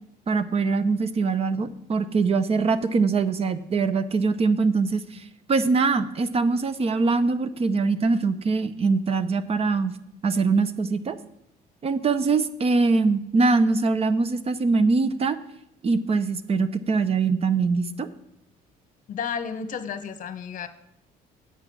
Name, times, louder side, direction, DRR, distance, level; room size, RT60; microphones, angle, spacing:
voice 1, 0.3-5.2 5.5-9.9 10.2-11.2 11.8-15.4 15.8-18.1, right 4 dB, 35° right, 13 dB, 0.8 m, -23 dB
voice 2, 19.1-20.7, left 6 dB, 50° left, 10 dB, 1.0 m, -32 dB
8.8 x 8.2 x 6.1 m, 0.79 s
cardioid pair, 110°, 17 cm